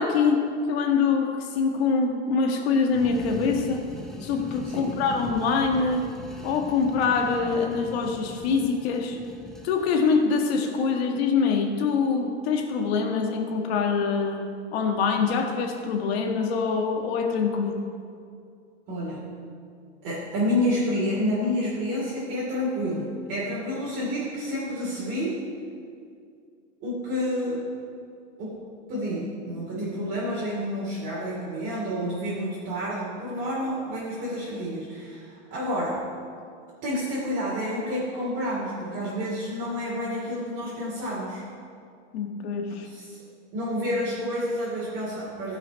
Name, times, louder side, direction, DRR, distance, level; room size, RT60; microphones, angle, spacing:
voice 1, 0.0-3.8 4.2-6.0 6.4-9.2 9.6-14.4 14.7-17.8 42.1-42.9, left 5 dB, 55° left, 3 dB, 1.6 m, -24 dB
sound 1, 2.8-10.2, left 1 dB, ahead, 0.5 m, -42 dB
voice 2, 4.6-5.0 18.9-19.3 20.0-25.4 26.8-27.6 28.4-28.6 28.9-36.0 36.8-41.4 42.8-43.2 43.5-45.6, equal, 30° right, -8 dB, 2.7 m, -29 dB
15.5 x 6.1 x 5.1 m, 2.3 s
supercardioid pair, 160°, 37 cm